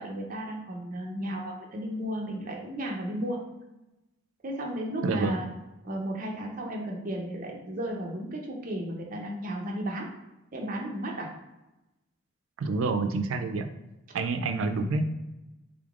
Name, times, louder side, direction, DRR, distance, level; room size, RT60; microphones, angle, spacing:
voice 1, 0.0-3.4 4.4-5.5 5.8-10.1 10.5-11.3, right 1 dB, 45° right, 0 dB, 0.6 m, -34 dB
voice 2, 5.0-5.4 12.6-13.7 14.1-15.0, right 3 dB, 90° right, 8 dB, 0.4 m, -28 dB
3.7 x 3.4 x 2.4 m, 0.99 s
head